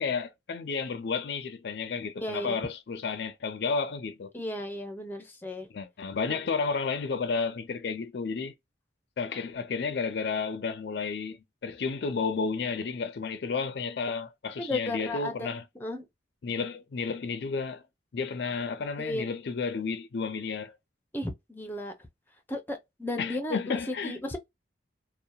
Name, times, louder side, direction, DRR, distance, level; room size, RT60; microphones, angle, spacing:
voice 1, 0.0-4.3 5.7-8.5 9.2-15.6 16.4-17.8 18.1-20.7 23.2-24.2, left 5 dB, 60° left, 0.4 m, -32 dB
voice 2, 2.2-2.7 4.3-5.7 6.3-6.4 14.6-15.5 15.8-16.0 19.0-19.3 21.1-21.9 22.5-23.6 23.9-24.4, left 1 dB, 10° left, 0.5 m, -34 dB
2.7 x 2.1 x 2.3 m
head